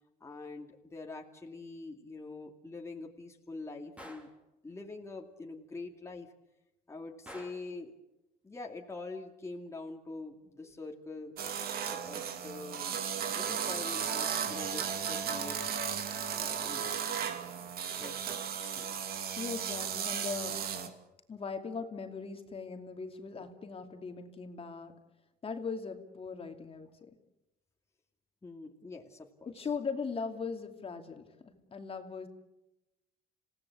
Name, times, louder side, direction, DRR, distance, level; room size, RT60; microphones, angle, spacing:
voice 1, 0.2-4.3 4.6-6.3 6.9-7.9 8.4-11.3 12.1-13.0 13.4-15.6 16.3-17.0 18.0-19.0 28.4-29.7, left 3 dB, 15° left, 1 dB, 2.4 m, -45 dB
Gunshot gunfire, 4.0-4.4 7.3-7.7, equal, 5° right, 3.4 m, -49 dB
sound 1, 11.4-20.9, right 7 dB, 65° right, 2.6 m, -35 dB
voice 2, 19.4-20.6 21.3-25.0 25.4-27.2 29.5-32.3, left 5 dB, 35° left, 5 dB, 2.6 m, -39 dB
28.0 x 17.0 x 8.5 m, 0.95 s
cardioid pair, 110°, 17 cm